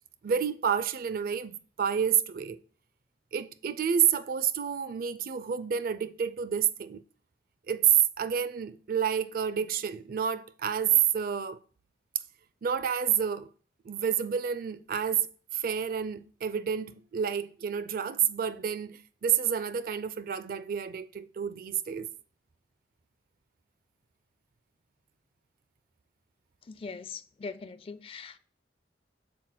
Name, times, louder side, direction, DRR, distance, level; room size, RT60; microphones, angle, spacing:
voice 1, 0.2-2.6 3.3-7.0 7.7-7.9 8.2-11.6 12.6-13.5 13.9-22.1, right 8 dB, 50° right, 0.4 m, -29 dB
voice 2, 26.7-28.4, left 4 dB, 30° left, 0.3 m, -41 dB
7.4 x 5.8 x 2.2 m
head